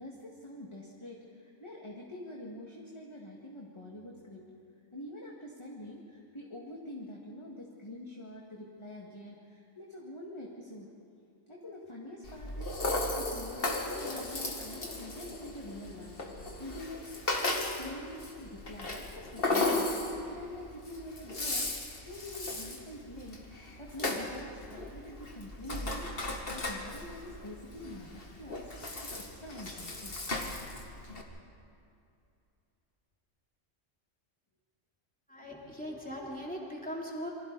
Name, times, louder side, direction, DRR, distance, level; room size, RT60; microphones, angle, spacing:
voice 1, 0.0-4.6 4.9-10.9 11.5-17.1 17.4-21.7 22.1-28.7 29.2-30.1 35.9-36.7, left 1 dB, 20° left, -3 dB, 2.1 m, -46 dB
Rattle (instrument), 12.2-31.2, left 2 dB, 50° left, 2.1 m, -36 dB
voice 2, 35.3-37.3, equal, 5° left, -3 dB, 3.5 m, -39 dB
28.0 x 24.5 x 4.1 m, 2.5 s
omnidirectional pair, 1.3 m